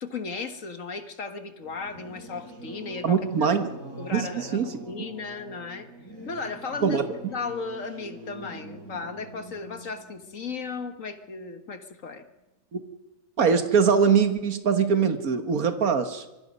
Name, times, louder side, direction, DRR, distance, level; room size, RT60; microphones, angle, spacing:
voice 1, 0.0-3.5 4.0-5.9 6.3-12.2, left 4 dB, 65° left, 8 dB, 1.9 m, -36 dB
Singing / Musical instrument, 1.6-11.7, right 1 dB, 70° right, 6.0 m, -44 dB
voice 2, 3.0-3.7 4.1-4.7 6.8-7.0 12.7-12.8 13.4-16.2, right 6 dB, 85° right, 8 dB, 1.9 m, -22 dB
25.5 x 22.0 x 5.4 m, 1.0 s
omnidirectional pair, 1.5 m